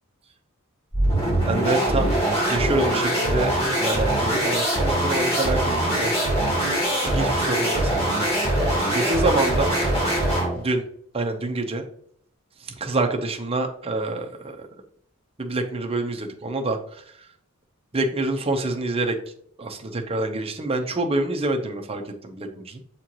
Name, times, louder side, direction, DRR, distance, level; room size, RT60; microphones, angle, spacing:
sound 1, 0.9-10.6, right 1 dB, 25° left, 2.7 m, -22 dB
voice 1, 1.4-2.2 2.5-3.5 3.8-6.1 7.0-8.1 8.9-9.7 10.5-10.8 11.1-11.8 12.8-14.3 15.4-16.8 17.9-19.2 19.6-22.8, right 2 dB, 25° right, 3 dB, 0.8 m, -26 dB
7.5 x 4.4 x 3.0 m, 0.65 s
head